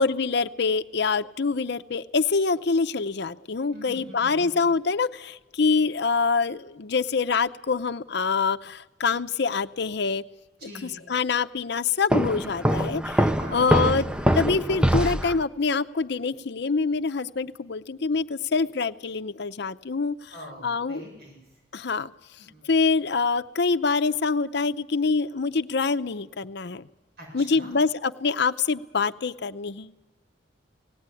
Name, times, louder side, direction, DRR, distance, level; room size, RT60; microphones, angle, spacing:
voice 1, 0.0-10.2 10.6-14.1 14.3-20.3 20.6-21.1 21.7-22.1 22.6-26.9 27.3-29.9, left 4 dB, 65° left, 11 dB, 0.7 m, -25 dB
voice 2, 3.7-4.7 10.6-11.0 13.4-14.0 20.3-21.4 22.4-22.7 27.2-27.7, left 1 dB, 60° right, 0 dB, 6.9 m, -44 dB
Walk footsteps, 12.1-15.4, equal, 5° right, 0.6 m, -23 dB
18.5 x 15.5 x 9.8 m, 1.1 s
head